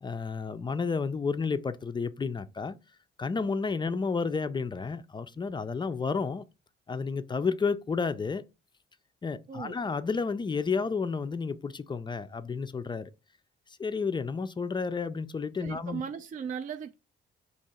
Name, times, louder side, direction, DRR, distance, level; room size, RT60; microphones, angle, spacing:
voice 1, 0.0-2.8 3.2-6.4 6.9-8.4 9.2-13.1 13.8-16.0, left 5 dB, 25° left, 0.4 m, -31 dB
voice 2, 15.6-16.9, right 6 dB, 40° right, 0.4 m, -37 dB
3.6 x 2.9 x 4.1 m
cardioid pair, 90°, 20 cm